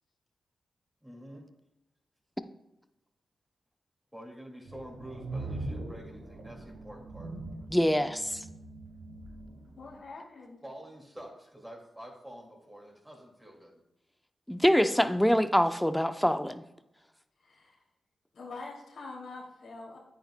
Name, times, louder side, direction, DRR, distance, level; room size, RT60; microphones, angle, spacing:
voice 1, 1.0-1.4 4.1-7.3 10.6-13.8, equal, 10° right, -2 dB, 2.2 m, -47 dB
sound 1, 4.7-10.0, right 2 dB, 85° right, 1.2 m, -41 dB
voice 2, 7.7-8.4 14.5-16.6, equal, 5° left, 10 dB, 0.7 m, -25 dB
voice 3, 9.8-10.6 17.4-17.8 18.3-20.0, left 3 dB, 75° left, -2 dB, 2.6 m, -44 dB
9.3 x 9.0 x 2.2 m, 0.91 s
supercardioid pair, 40°, 0 cm